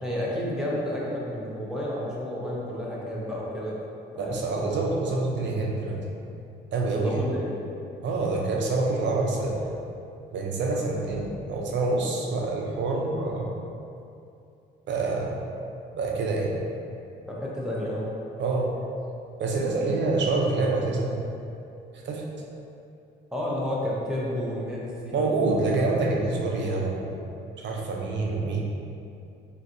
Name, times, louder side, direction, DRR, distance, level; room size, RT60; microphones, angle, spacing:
voice 1, 0.0-3.8 4.1-4.9 7.0-7.6 17.3-18.1 23.3-25.2 25.9-26.1, left 1 dB, 5° right, -6 dB, 0.7 m, -31 dB
voice 2, 4.2-6.0 6.7-7.2 8.0-9.6 10.3-13.5 14.9-15.3 15.9-16.5 18.4-18.7 19.4-21.2 22.0-22.2 25.1-27.2 27.6-28.6, right 3 dB, 65° right, -1 dB, 0.6 m, -26 dB
3.9 x 2.5 x 2.6 m, 2.6 s
cardioid pair, 90°, 20 cm